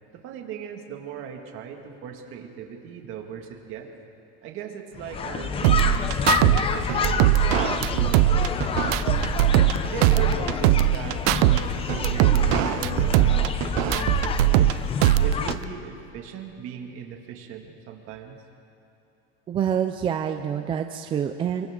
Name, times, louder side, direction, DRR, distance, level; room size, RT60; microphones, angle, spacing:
voice 1, 0.1-3.9 4.4-9.4 9.8-14.7 15.2-18.4, right 8 dB, 40° right, 2 dB, 2.2 m, -38 dB
sound 1, 5.0-15.6, left 6 dB, 20° left, 0.7 m, -28 dB
sound 2, 5.6-6.6 6.9-9.8 10.0-11.6 11.9-14.7 15.0-15.6, right 16 dB, 65° right, 0.7 m, -20 dB
voice 2, 19.5-21.7, right 8 dB, 15° right, 6 dB, 0.4 m, -27 dB
30.0 x 23.5 x 3.8 m, 2.8 s
supercardioid pair, 160°, 32 cm